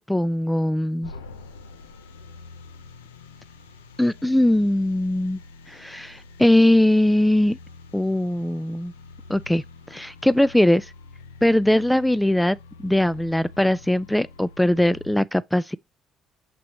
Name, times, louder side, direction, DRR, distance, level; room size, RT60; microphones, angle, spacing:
voice 1, 0.1-1.1 4.0-5.4 5.7-7.6 7.9-8.9 9.3-9.6 9.9-10.9 11.4-12.6 12.8-15.8, left 1 dB, 5° left, 0.3 m, -20 dB
sound 1, 1.0-15.1, left 3 dB, 90° left, 0.6 m, -46 dB
6.0 x 6.0 x 3.0 m
hypercardioid pair, 50°, 0 cm